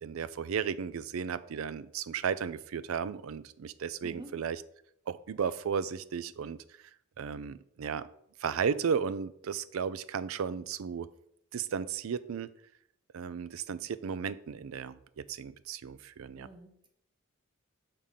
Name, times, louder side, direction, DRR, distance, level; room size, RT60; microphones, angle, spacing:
voice 1, 0.0-4.6 5.1-6.8 7.2-8.1 8.4-11.1 11.5-12.5 13.1-16.5, right 6 dB, 75° right, 15 dB, 0.4 m, -34 dB
voice 2, 16.4-16.9, right 2 dB, 25° right, 3 dB, 1.1 m, -48 dB
6.6 x 3.7 x 5.6 m, 0.72 s
head